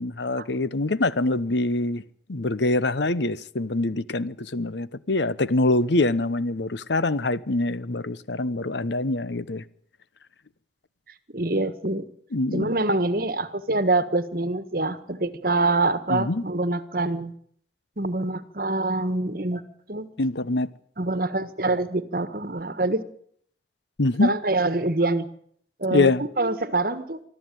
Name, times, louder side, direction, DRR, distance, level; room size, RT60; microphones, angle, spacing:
voice 1, 0.0-2.0 2.3-9.6 12.3-12.7 16.1-16.4 20.2-20.7 24.0-24.3 25.9-26.2, left 2 dB, 70° left, 0.9 m, -24 dB
voice 2, 11.3-12.1 12.5-17.3 18.0-19.6 19.9-20.1 21.0-23.0 24.2-25.3 25.8-27.2, right 2 dB, 50° right, 1.5 m, -25 dB
24.5 x 13.5 x 9.2 m
head